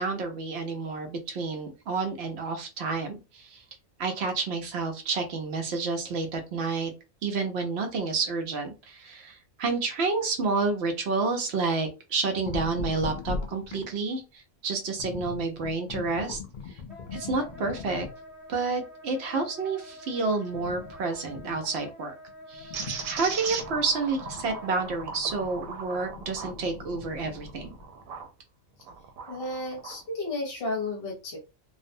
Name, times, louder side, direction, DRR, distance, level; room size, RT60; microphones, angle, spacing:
voice 1, 0.0-3.6 4.0-6.9 7.2-16.4 16.7-16.8 17.1-18.1 18.5-22.1 22.5-22.8 23.1-27.7, right 4 dB, 60° right, 4 dB, 0.8 m, -30 dB
sound 1, 12.4-14.1 15.0-18.3 20.5-21.8 22.3-27.8, left 4 dB, 85° left, 0.4 m, -40 dB
Wind instrument woodwind instrument, 16.9-25.1, left 1 dB, ahead, 0.3 m, -47 dB
sound 2, 22.7-28.3 28.8-30.0, right 5 dB, 80° right, 1.0 m, -38 dB
voice 2, 29.3-31.4, left 2 dB, 50° left, 0 dB, 0.9 m, -33 dB
2.5 x 2.1 x 2.6 m, 0.29 s
omnidirectional pair, 1.4 m